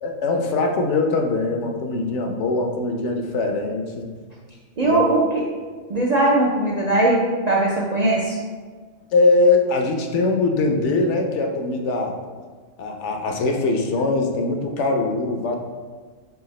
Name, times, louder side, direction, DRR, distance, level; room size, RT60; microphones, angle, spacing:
voice 1, 0.0-4.1 4.8-5.0 9.1-12.2 12.8-15.6, left 3 dB, 75° left, 3 dB, 0.9 m, -22 dB
voice 2, 4.8-5.4 5.9-8.4, right 2 dB, 60° right, -4 dB, 0.4 m, -19 dB
4.7 x 3.3 x 3.1 m, 1.5 s
omnidirectional pair, 1.3 m